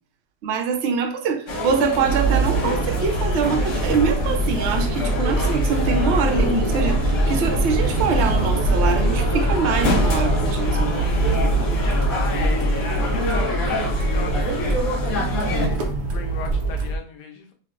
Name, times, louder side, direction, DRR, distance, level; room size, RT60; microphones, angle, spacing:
voice 1, 0.4-11.1, right 5 dB, 65° right, 5 dB, 0.7 m, -24 dB
sound 1, 1.5-15.7, left 1 dB, 55° left, 1.1 m, -27 dB
sound 2, 2.0-17.0, right 1 dB, 80° right, 1.2 m, -23 dB
voice 2, 11.9-15.1 15.5-17.5, left 5 dB, 80° left, 3 dB, 1.3 m, -38 dB
5.7 x 2.1 x 2.4 m, 0.42 s
omnidirectional pair, 1.8 m